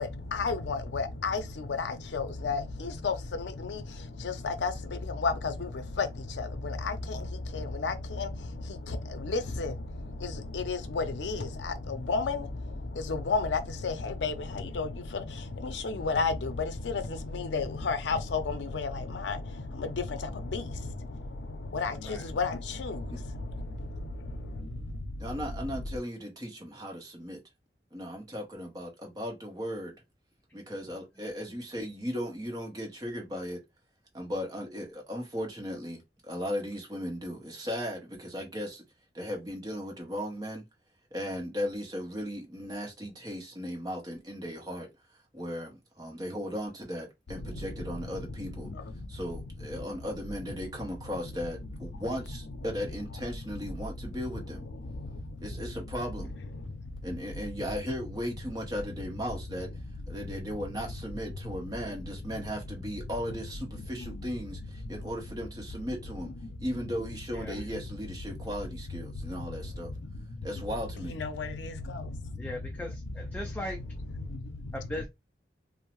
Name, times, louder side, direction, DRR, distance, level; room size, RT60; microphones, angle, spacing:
voice 1, 1.0-1.4 2.4-2.6 4.6-4.7 5.2-5.3 7.8-7.9 10.7-11.0 12.1-12.4 13.3-13.4 13.8-13.9 14.2-14.3 14.8-14.9 16.0-16.3 17.5-18.2 21.8-21.9 22.4-22.5, left 4 dB, 90° left, 0.5 m, -27 dB
voice 2, 25.2-27.4 27.9-29.9 30.5-33.6 34.1-36.0 36.3-38.8 39.1-40.6 41.1-44.9 45.3-48.7 49.1-54.6 55.4-56.3 57.0-59.7 60.1-66.3 66.6-69.9 70.4-71.2, equal, 20° right, 0.8 m, -36 dB
voice 3, 72.4-73.8 74.7-75.1, left 1 dB, 10° left, 0.3 m, -38 dB
2.6 x 2.0 x 3.0 m
head